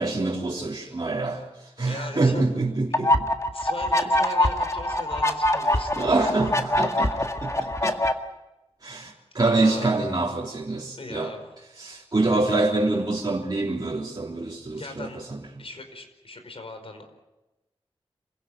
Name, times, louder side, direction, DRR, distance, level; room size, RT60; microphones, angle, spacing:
voice 1, 0.0-3.3 6.0-8.0 8.8-11.3 11.8-15.4, right 2 dB, 40° right, -4 dB, 3.5 m, -26 dB
voice 2, 1.8-2.4 2.9-3.0 3.5-6.3 7.3-7.6 9.5-10.0 11.0-11.4 14.7-15.2 15.6-17.1, left 2 dB, 65° left, 7 dB, 5.0 m, -39 dB
sound 1, 2.9-8.1, left 1 dB, 30° left, 1.9 m, -24 dB
27.0 x 17.0 x 9.1 m, 1.0 s
wide cardioid pair, 75°, 10 cm